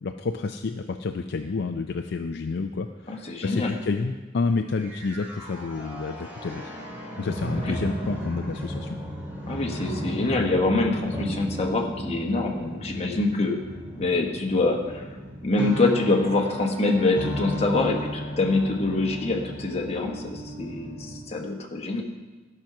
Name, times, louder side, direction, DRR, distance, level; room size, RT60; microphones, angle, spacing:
voice 1, 0.0-6.6 7.2-9.0, left 4 dB, 55° left, 6 dB, 0.4 m, -29 dB
voice 2, 3.1-3.8 7.5-7.8 9.5-13.6 14.0-15.1 15.4-22.0, left 2 dB, 30° left, 1 dB, 1.2 m, -25 dB
sound 1, 4.8-21.2, equal, 10° right, 2.2 m, -34 dB
13.5 x 5.9 x 6.0 m, 1.3 s
head